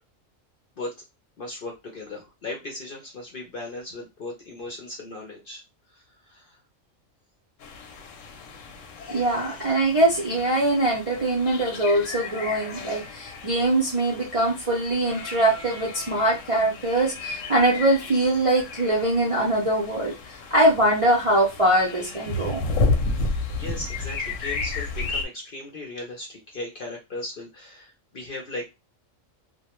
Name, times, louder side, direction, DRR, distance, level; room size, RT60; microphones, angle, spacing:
voice 1, 1.4-5.6 5.9-6.6 9.0-9.2 23.5-28.7, left 2 dB, 55° left, 0 dB, 0.6 m, -37 dB
sound 1, 7.6-25.3, left 3 dB, 75° left, 0.9 m, -32 dB
voice 2, 9.1-22.6, right 1 dB, 40° right, -4 dB, 0.5 m, -22 dB
2.3 x 2.1 x 2.9 m, 0.24 s
omnidirectional pair, 1.4 m